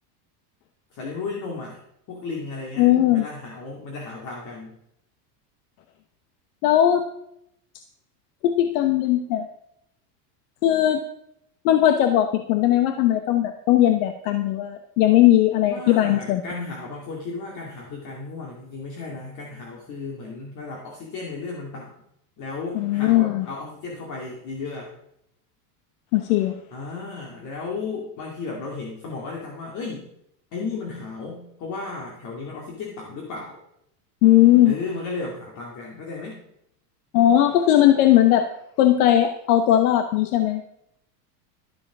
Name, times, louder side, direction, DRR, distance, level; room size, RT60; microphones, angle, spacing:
voice 1, 0.9-1.8 2.1-4.8 15.6-21.9 22.4-24.9 26.7-30.1 30.5-33.6 34.7-36.4, left 4 dB, 35° left, -1 dB, 2.4 m, -34 dB
voice 2, 2.8-3.2 6.6-7.0 8.4-9.5 10.6-11.0 11.6-16.4 22.7-23.5 26.1-26.6 34.2-34.8 37.1-38.5 38.8-40.6, left 12 dB, 65° left, 8 dB, 1.0 m, -18 dB
12.5 x 7.2 x 6.0 m, 0.77 s
supercardioid pair, 150°, 48 cm